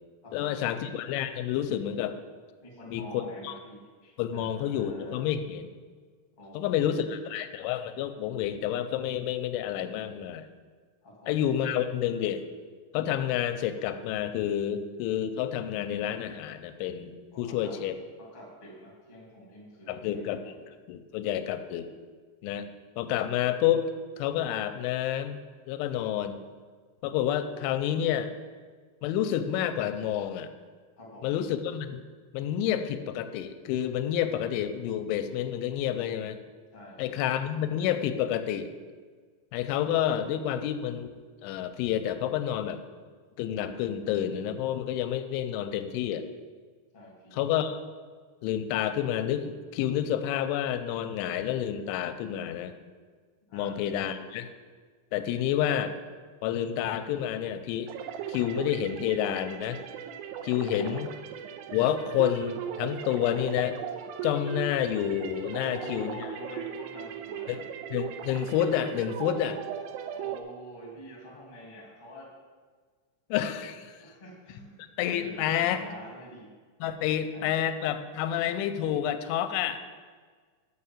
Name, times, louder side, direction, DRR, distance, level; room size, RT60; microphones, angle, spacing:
voice 1, 0.3-2.2 2.9-3.0 3.4-3.5 4.2-5.7 6.5-10.5 11.3-12.4 12.9-18.0 19.9-21.9 22.4-22.7 23.0-23.9 24.2-25.4 25.7-26.4 27.0-28.3 29.0-30.5 31.2-32.0 32.3-36.4 37.0-38.7 39.5-41.1 41.4-42.8 43.4-46.3 47.3-47.8 48.4-52.7 53.5-54.5 55.1-55.9 56.4-57.9 58.3-59.8 60.4-61.1 61.7-63.8 64.2-66.1 67.5-67.6 67.9-69.6 73.3-74.0 75.0-75.8 76.8-79.8, left 10 dB, 90° left, 10 dB, 3.0 m, -29 dB
voice 2, 2.6-5.2 6.4-7.2 11.0-11.3 17.3-17.7 18.2-20.5 31.0-31.3 36.7-37.2 46.9-47.4 53.5-53.8 60.6-61.0 65.5-67.6 70.1-72.3 74.0-74.8 75.2-76.5 77.1-77.6, equal, 30° left, -4 dB, 0.8 m, -46 dB
sound 1, 57.9-70.4, right 8 dB, 85° right, 2.4 m, -38 dB
6.6 x 6.6 x 7.1 m, 1.5 s
omnidirectional pair, 5.3 m